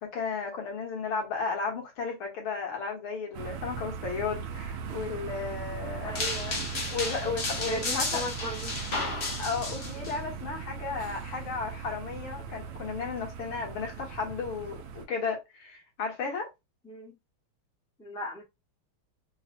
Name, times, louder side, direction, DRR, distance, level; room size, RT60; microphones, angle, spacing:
voice 1, 0.0-6.1 6.7-8.2 9.4-16.5, left 5 dB, 70° left, 2.1 m, -34 dB
sound 1, 3.3-15.1, right 7 dB, 85° right, 1.5 m, -39 dB
voice 2, 6.0-6.6 7.7-8.8 16.8-17.2 18.0-18.4, equal, 5° left, 0.3 m, -37 dB
sound 2, 6.2-10.1, left 3 dB, 55° left, 0.7 m, -33 dB
4.6 x 2.1 x 2.6 m
omnidirectional pair, 2.4 m